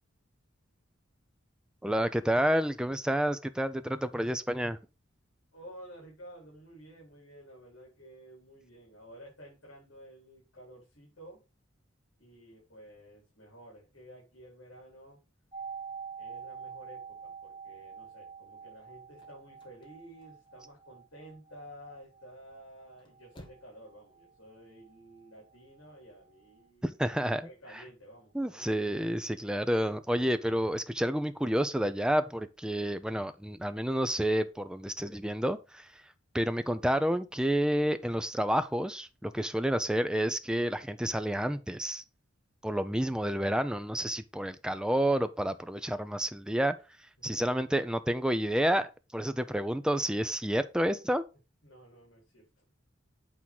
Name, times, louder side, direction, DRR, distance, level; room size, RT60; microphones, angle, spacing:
voice 1, 1.8-4.8 26.8-27.4 28.3-35.9 36.3-42.0 42.6-46.7 47.2-51.2, equal, 5° right, 0.5 m, -29 dB
voice 2, 5.5-11.4 12.2-15.2 16.2-27.1 27.4-28.7 47.2-47.4 51.6-52.6, equal, 70° left, 4.0 m, -52 dB
sound 1, 15.5-25.3 25.5-25.6, right 6 dB, 25° right, 1.4 m, -47 dB
sound 2, 19.2-21.0 21.4-21.9 22.7-23.9 24.2-24.3, equal, 25° left, 1.6 m, -56 dB
8.5 x 3.7 x 5.9 m
head